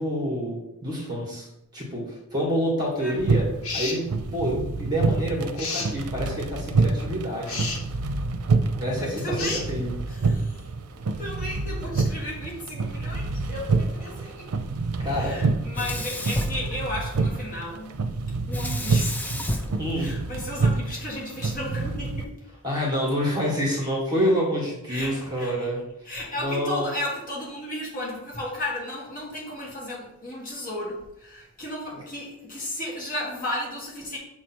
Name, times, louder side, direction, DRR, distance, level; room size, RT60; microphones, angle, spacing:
voice 1, 0.0-1.5 1.7-3.5 3.7-7.6 8.8-9.9 15.0-15.4 19.8-20.1 22.6-25.8 26.4-26.9, equal, 20° right, -3 dB, 1.6 m, -27 dB
sound 1, 3.2-22.2, right 3 dB, 85° right, 0.5 m, -27 dB
sound 2, 3.6-4.0 5.6-5.9 7.5-7.8 9.4-9.7, left 4 dB, 75° left, 1.1 m, -30 dB
voice 2, 9.0-9.6 10.1-10.7 11.2-14.5 15.0-17.9 18.5-19.6 19.9-22.3 24.9-25.7 26.0-34.2, left 1 dB, 40° left, -4 dB, 1.8 m, -34 dB
Sink (filling or washing), 15.7-17.4 18.5-20.8, left 1 dB, 5° left, 0.3 m, -32 dB
7.2 x 3.2 x 4.4 m, 0.85 s
head